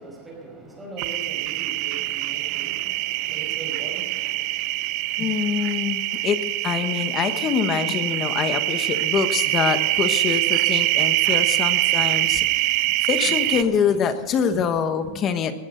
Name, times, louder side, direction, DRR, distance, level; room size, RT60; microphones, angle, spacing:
voice 1, 0.0-5.7, right 2 dB, 10° right, -1 dB, 5.0 m, -41 dB
sound 1, 1.0-13.6, right 18 dB, 45° right, 0.6 m, -24 dB
voice 2, 5.2-6.4 6.6-12.5 13.0-15.5, left 7 dB, 25° left, 10 dB, 1.1 m, -24 dB
19.0 x 15.5 x 3.9 m, 1.4 s
supercardioid pair, 160°, 0 cm